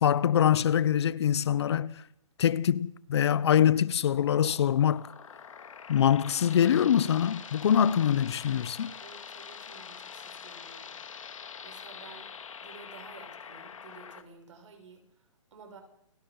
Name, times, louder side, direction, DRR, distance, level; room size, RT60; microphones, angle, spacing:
voice 1, 0.0-1.9 2.4-5.1 5.9-8.9, left 9 dB, 55° left, 0.9 m, -24 dB
sound 1, 4.2-14.2, left 7 dB, 75° left, 2.2 m, -45 dB
voice 2, 9.0-11.0 11.6-12.3 12.6-15.8, right 5 dB, 65° right, 7.0 m, -52 dB
29.5 x 17.5 x 5.6 m
hypercardioid pair, 160°, 17 cm